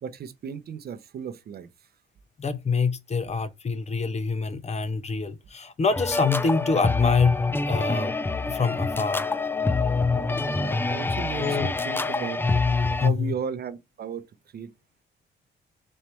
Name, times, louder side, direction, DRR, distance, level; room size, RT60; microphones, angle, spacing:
voice 1, 0.0-1.7 10.4-12.4 13.0-14.2 14.5-14.7, right 7 dB, 50° right, 0.7 m, -35 dB
voice 2, 2.4-7.4 7.7-8.1 8.5-9.2 11.4-11.7 13.0-13.3, left 4 dB, 35° left, 0.8 m, -25 dB
sound 1, 5.9-13.1, left 3 dB, 10° left, 0.4 m, -26 dB
4.3 x 3.3 x 3.1 m
cardioid pair, 90°, 20 cm